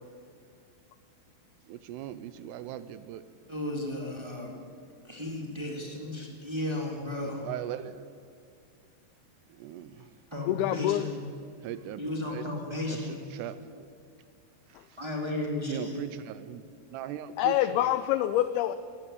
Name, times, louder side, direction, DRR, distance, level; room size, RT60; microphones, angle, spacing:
voice 1, 1.6-3.3 7.2-8.1 9.5-10.2 11.6-12.0 12.3-13.9 14.7-15.0 15.6-17.9, right 11 dB, 80° right, 13 dB, 2.6 m, -40 dB
voice 2, 3.5-4.6 5.0-7.4 10.3-11.2 12.0-13.2 15.0-16.0, left 1 dB, 30° right, -1 dB, 0.5 m, -34 dB
voice 3, 10.5-11.1 17.4-18.8, left 13 dB, 90° left, 13 dB, 2.2 m, -26 dB
18.5 x 15.0 x 9.5 m, 2.3 s
omnidirectional pair, 5.1 m